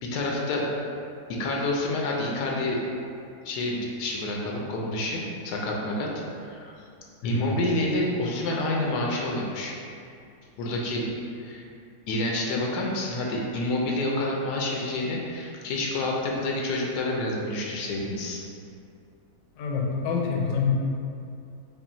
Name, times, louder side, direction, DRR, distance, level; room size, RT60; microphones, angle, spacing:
voice 1, 0.0-0.7 1.3-2.8 3.4-6.1 6.4-6.7 7.2-9.7 10.6-11.1 11.4-11.6 12.1-18.4, left 2 dB, 90° left, -2 dB, 1.2 m, -28 dB
voice 2, 7.2-7.5 19.6-20.7, left 5 dB, 70° left, -1 dB, 0.9 m, -26 dB
5.4 x 2.5 x 2.6 m, 2.5 s
omnidirectional pair, 1.7 m